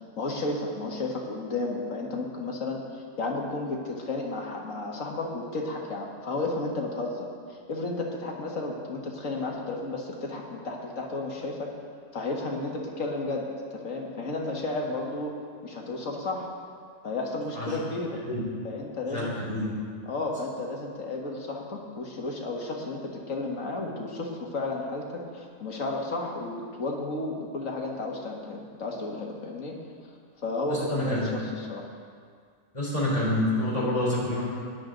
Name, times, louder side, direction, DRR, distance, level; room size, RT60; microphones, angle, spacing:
voice 1, 0.2-11.7 12.1-15.3 15.6-16.5 17.0-18.2 18.6-19.3 20.0-29.8 30.4-31.9, left 2 dB, 75° left, -1 dB, 2.1 m, -33 dB
voice 2, 19.1-19.7 30.7-31.4 32.7-34.4, left 1 dB, 25° left, -7 dB, 4.3 m, -27 dB
17.0 x 10.5 x 4.0 m, 2.1 s
omnidirectional pair, 1.4 m